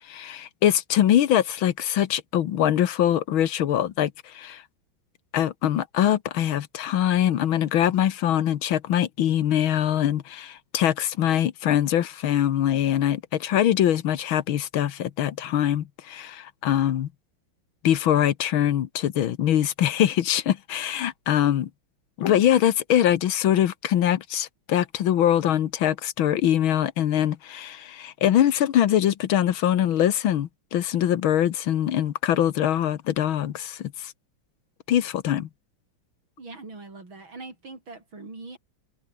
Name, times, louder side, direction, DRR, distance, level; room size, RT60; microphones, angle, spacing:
voice 1, 0.0-4.6 5.3-17.1 17.8-21.7 22.2-34.1 34.9-35.5, left 11 dB, 75° left, 1.9 m, -23 dB
voice 2, 36.4-38.6, right 3 dB, 70° right, 6.3 m, -42 dB
omnidirectional pair, 2.3 m